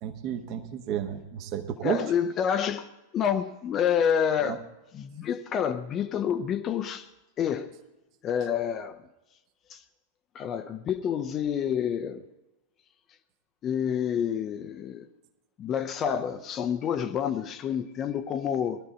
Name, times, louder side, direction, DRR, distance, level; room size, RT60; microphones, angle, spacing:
voice 1, 0.0-2.0 4.5-4.6, right 9 dB, 40° right, 1.2 m, -32 dB
voice 2, 1.8-4.6 4.9-7.1 7.4-7.8 8.2-9.0 9.7-9.8 10.3-12.3 13.6-15.1 15.6-18.8, left 8 dB, 30° left, 0.7 m, -28 dB
18.5 x 12.5 x 4.2 m
figure-of-eight pair, 90°, 0 cm